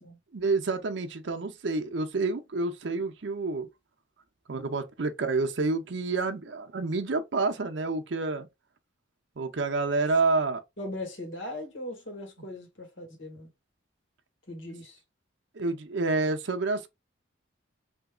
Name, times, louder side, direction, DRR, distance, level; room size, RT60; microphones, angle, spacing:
voice 1, 0.3-3.7 4.5-8.5 9.4-10.6 15.5-16.9, right 3 dB, 60° right, 0.6 m, -28 dB
voice 2, 10.8-13.5 14.5-15.0, left 1 dB, 65° left, 1.6 m, -39 dB
3.5 x 2.8 x 2.2 m
head